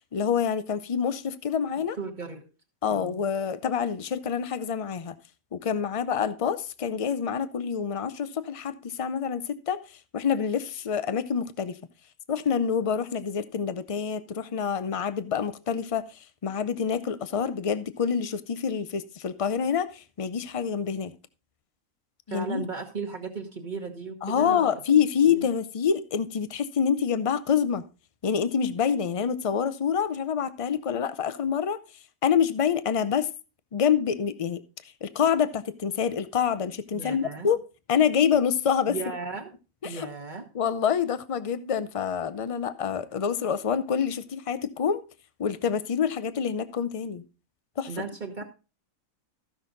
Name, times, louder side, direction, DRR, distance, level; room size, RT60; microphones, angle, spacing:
voice 1, 0.1-2.0 2.8-5.1 5.5-9.8 10.1-11.8 12.3-16.0 16.4-21.1 22.3-22.6 24.2-27.8 28.2-31.8 32.2-33.3 33.7-34.6 35.0-37.6 37.9-39.0 39.8-40.1 40.5-45.0 45.4-47.2 47.8-47.9, left 7 dB, 55° left, 0.3 m, -26 dB
voice 2, 2.0-2.4 2.9-3.2 22.3-24.8 25.3-25.5 36.9-37.5 38.9-39.5 39.8-40.5 47.9-48.4, right 4 dB, 35° right, 1.3 m, -35 dB
14.5 x 5.9 x 3.9 m
omnidirectional pair, 1.5 m